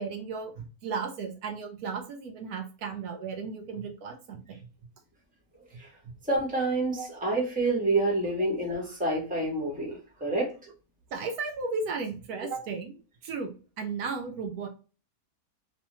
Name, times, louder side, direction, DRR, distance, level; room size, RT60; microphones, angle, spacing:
voice 1, 0.0-4.6 6.0-6.1 6.9-7.1 11.1-14.7, right 4 dB, 75° right, 3 dB, 1.1 m, -35 dB
voice 2, 6.2-10.5, right 2 dB, 5° right, -2 dB, 0.9 m, -28 dB
3.1 x 2.2 x 2.9 m, 0.35 s
omnidirectional pair, 1.6 m